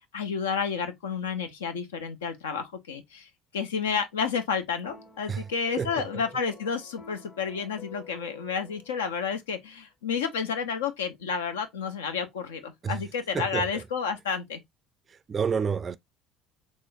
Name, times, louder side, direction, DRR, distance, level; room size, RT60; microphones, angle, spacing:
voice 1, 0.0-14.6, left 6 dB, 80° left, 0.6 m, -31 dB
sound 1, 4.8-9.3, left 5 dB, 45° left, 1.7 m, -49 dB
voice 2, 5.8-6.2 12.8-13.0 13.3-13.8 15.1-16.0, right 6 dB, 35° right, 0.3 m, -30 dB
3.5 x 3.1 x 2.5 m
hypercardioid pair, 60°, 0 cm